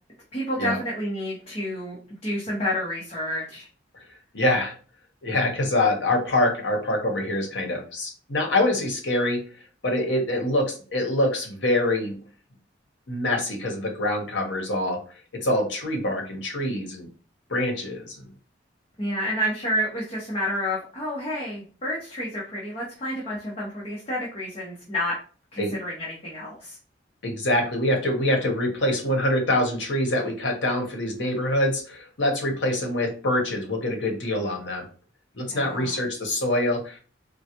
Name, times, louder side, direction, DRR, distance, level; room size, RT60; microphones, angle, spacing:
voice 1, 0.3-3.7 19.0-25.2 25.5-26.8 35.5-36.0, equal, 30° left, -6 dB, 0.9 m, -29 dB
voice 2, 4.3-4.7 5.2-9.4 9.8-12.2 13.1-15.0 15.4-17.1 17.5-18.2 25.6-25.7 27.2-34.9 35.4-37.0, left 1 dB, 70° left, 2 dB, 1.0 m, -25 dB
3.8 x 2.2 x 2.9 m, 0.38 s
head